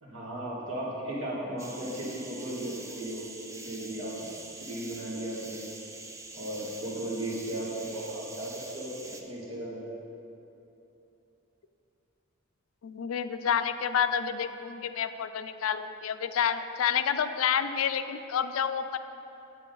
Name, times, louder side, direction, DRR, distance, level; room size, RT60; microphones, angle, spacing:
voice 1, 0.0-4.3 4.6-5.7 6.3-10.0, right 1 dB, 80° right, -6 dB, 2.0 m, -36 dB
sound 1, 1.6-9.2, right 3 dB, 15° right, 0.4 m, -45 dB
voice 2, 12.8-19.0, left 8 dB, 90° left, 11 dB, 0.4 m, -29 dB
8.4 x 7.4 x 3.9 m, 2.9 s
head